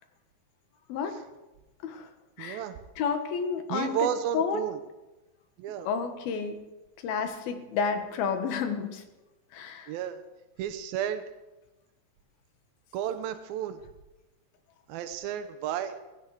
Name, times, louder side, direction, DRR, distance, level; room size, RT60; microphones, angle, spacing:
voice 1, 2.4-2.8 3.7-4.8 5.6-5.9 9.9-10.2 10.6-11.2 12.9-13.8 14.9-16.0, right 10 dB, 90° right, 9 dB, 2.7 m, -32 dB
voice 2, 3.0-4.0 4.3-4.6 5.9-6.6 7.0-9.0 9.5-9.9, left 6 dB, 90° left, 7 dB, 3.4 m, -30 dB
17.0 x 16.5 x 4.9 m, 1.1 s
omnidirectional pair, 4.1 m